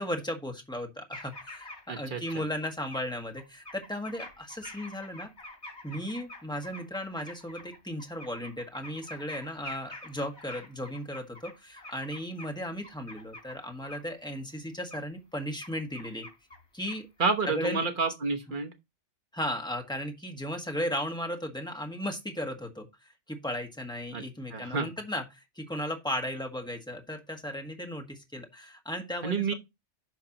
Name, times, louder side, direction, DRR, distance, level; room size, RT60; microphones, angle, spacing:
voice 1, 0.0-5.3 5.8-16.3 16.7-17.1 17.5-17.9 19.3-22.9 23.3-29.5, equal, 5° left, 1.6 m, -36 dB
sound 1, 1.1-2.0 2.3-3.0 3.4-12.5 12.8-13.6 13.8-14.0 14.9-15.0 15.3-16.6 16.9-17.2, left 1 dB, 70° left, 3.3 m, -46 dB
voice 2, 1.9-2.4 17.2-18.7 24.1-24.2 24.5-24.9 29.2-29.5, right 4 dB, 45° right, 1.2 m, -29 dB
10.5 x 5.7 x 2.9 m
omnidirectional pair, 1.2 m